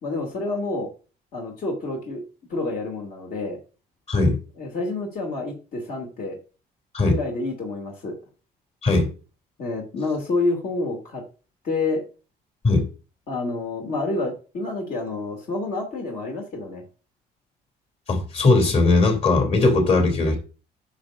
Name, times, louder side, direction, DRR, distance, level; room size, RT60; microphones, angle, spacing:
voice 1, 0.0-0.9 1.3-3.6 4.6-6.4 7.1-8.1 9.6-11.2 11.6-12.0 13.3-16.8, left 3 dB, 55° left, 1 dB, 2.8 m, -28 dB
voice 2, 18.1-20.4, left 3 dB, 40° left, 2 dB, 3.2 m, -19 dB
10.0 x 6.5 x 2.6 m, 0.34 s
cardioid pair, 110°, 17 cm